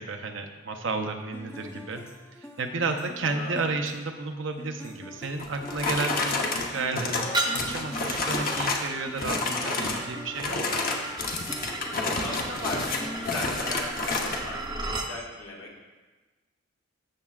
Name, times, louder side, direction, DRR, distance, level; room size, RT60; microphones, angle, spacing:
voice 1, 0.0-2.0 2.4-10.8, right 3 dB, 60° right, 4 dB, 0.6 m, -32 dB
sound 1, 1.3-14.5, left 1 dB, 10° left, 0.6 m, -44 dB
voice 2, 3.2-3.6 11.8-15.7, left 2 dB, 80° left, -1 dB, 1.8 m, -38 dB
sound 2, 5.4-8.9 9.2-10.0 10.3-14.4, left 3 dB, 45° left, 0.9 m, -29 dB
sound 3, 7.3-15.1, right 2 dB, 20° right, 0.8 m, -35 dB
13.0 x 7.3 x 2.4 m, 1.2 s
head